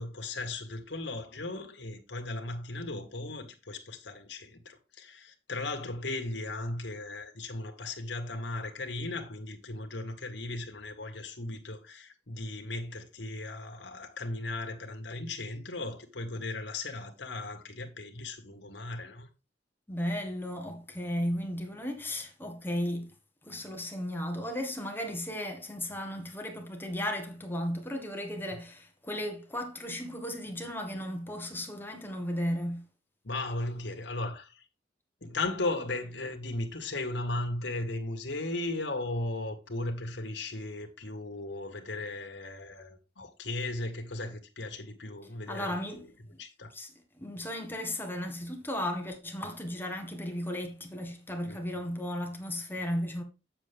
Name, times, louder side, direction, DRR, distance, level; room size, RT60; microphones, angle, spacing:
voice 1, 0.0-19.3 33.2-34.6 35.2-46.1 46.4-46.7 51.4-51.8, left 2 dB, 75° left, 1.8 m, -36 dB
voice 2, 19.9-23.1 23.4-32.8 45.5-46.0 46.7-53.2, equal, 10° left, 1.6 m, -35 dB
8.3 x 7.1 x 3.6 m
head